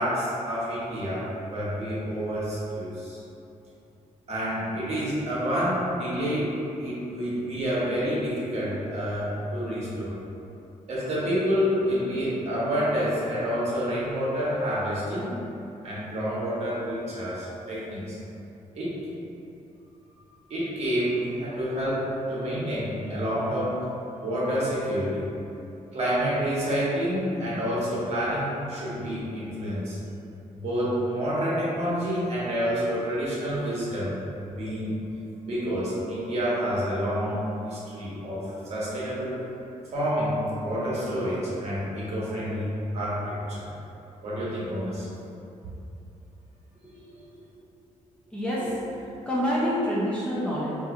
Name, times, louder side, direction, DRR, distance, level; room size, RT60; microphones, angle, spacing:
voice 1, 0.0-3.2 4.3-10.2 10.9-15.4 15.8-18.2 18.7-19.0 20.5-23.8 24.2-25.2 25.9-30.0 30.5-34.1 34.4-35.0 35.4-39.4 39.9-43.7 44.2-45.1 47.3-47.4, equal, 55° right, -8 dB, 1.1 m, -28 dB
voice 2, 48.3-50.7, equal, 10° left, -8 dB, 0.6 m, -27 dB
3.8 x 2.7 x 2.5 m, 2.8 s
cardioid pair, 130°, 13 cm